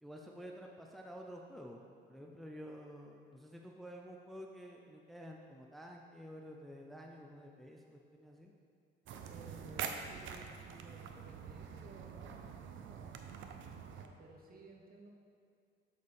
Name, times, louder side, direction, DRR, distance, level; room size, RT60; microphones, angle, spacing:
voice 1, 0.0-8.5, equal, ahead, 0 dB, 0.6 m, -50 dB
sound 1, 9.1-14.1, right 7 dB, 75° right, 0.6 m, -45 dB
voice 2, 9.3-13.2 13.9-15.1, right 2 dB, 45° right, 0 dB, 1.2 m, -56 dB
7.5 x 6.7 x 3.5 m, 2.5 s
cardioid pair, 90°, 20 cm